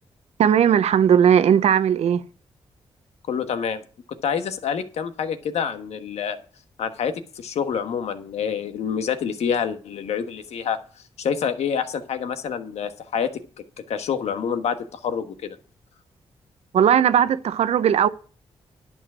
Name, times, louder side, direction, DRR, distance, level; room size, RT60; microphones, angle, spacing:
voice 1, 0.4-2.2 16.7-18.1, right 8 dB, 80° right, 0.7 m, -17 dB
voice 2, 3.3-3.8 4.1-6.4 6.8-10.8 11.2-13.4 13.9-15.6, left 7 dB, 80° left, 1.3 m, -27 dB
11.0 x 7.1 x 6.2 m
cardioid pair, 80°, 11 cm